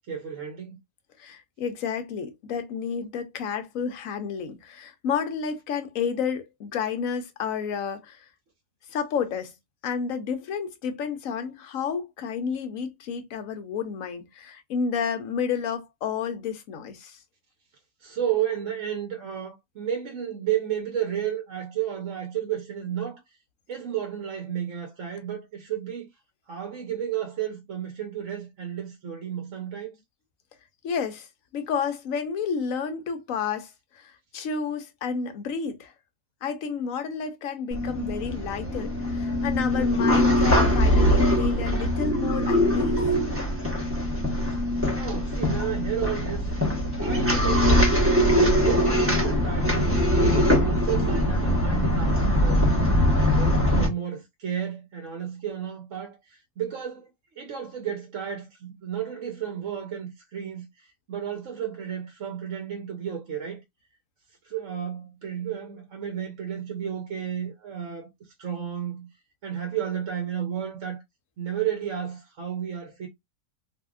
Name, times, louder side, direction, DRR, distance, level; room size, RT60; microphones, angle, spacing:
voice 1, 0.1-0.8 18.0-23.2 23.7-26.1 26.5-29.9 39.7-40.1 45.0-46.5 47.0-52.7 53.3-63.6 64.4-68.1 68.4-69.1 69.4-71.0 71.4-73.1, right 9 dB, 60° right, 1.0 m, -32 dB
voice 2, 1.2-8.2 8.9-9.5 9.8-17.2 30.8-31.3 31.5-33.7 34.0-35.9 36.4-43.0, left 6 dB, 65° left, 1.1 m, -31 dB
sound 1, 37.7-53.9, equal, 10° right, 0.9 m, -22 dB
3.5 x 2.7 x 2.4 m
omnidirectional pair, 1.6 m